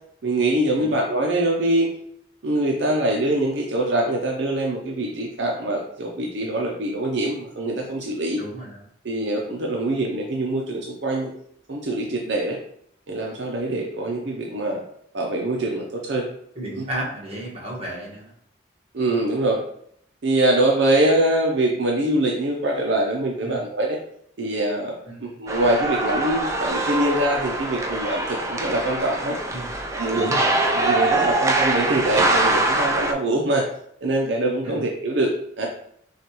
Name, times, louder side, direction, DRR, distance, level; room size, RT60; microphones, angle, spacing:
voice 1, 0.2-1.9 2.4-8.4 9.0-11.3 11.7-12.6 13.1-14.8 15.1-16.3 16.8-16.9 18.9-19.6 20.2-24.0 24.4-29.4 29.9-30.3 30.7-33.6 34.0-35.7, right 1 dB, 65° right, -1 dB, 0.6 m, -23 dB
voice 2, 8.4-8.9 16.5-18.3 23.4-23.6 25.1-25.4 29.5-29.7 30.1-30.5 34.6-34.8, right 1 dB, 30° right, -4 dB, 1.3 m, -33 dB
sound 1, 25.5-33.1, right 2 dB, 15° right, 0.4 m, -23 dB
6.2 x 2.4 x 3.0 m, 0.68 s
head